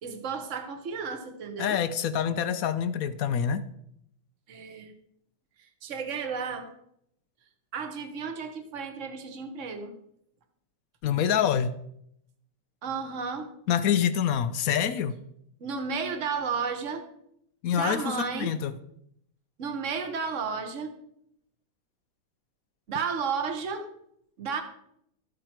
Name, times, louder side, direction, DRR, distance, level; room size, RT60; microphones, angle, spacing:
voice 1, 0.0-1.8 4.5-4.9 5.8-6.7 7.7-9.9 12.8-13.5 15.6-17.1 17.7-18.5 19.6-21.0 22.9-23.8 24.4-24.6, right 5 dB, 40° right, 6 dB, 1.5 m, -33 dB
voice 2, 1.6-3.6 11.0-11.7 13.7-15.1 17.6-18.7, left 8 dB, 70° left, 12 dB, 0.8 m, -26 dB
13.0 x 9.0 x 4.5 m, 0.73 s
omnidirectional pair, 2.3 m